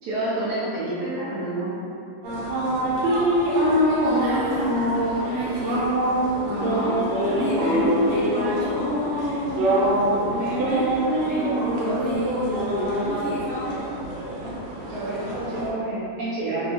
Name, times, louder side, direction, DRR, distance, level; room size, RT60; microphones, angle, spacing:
voice 1, 0.0-1.7 14.9-16.7, right 2 dB, 70° right, -10 dB, 0.9 m, -28 dB
sound 1, 2.2-15.7, right 1 dB, 90° right, 1.4 m, -24 dB
voice 2, 3.5-5.9 6.5-11.0 11.3-13.8, equal, 85° left, -10 dB, 0.7 m, -29 dB
2.9 x 2.6 x 3.3 m, 2.6 s
omnidirectional pair, 2.1 m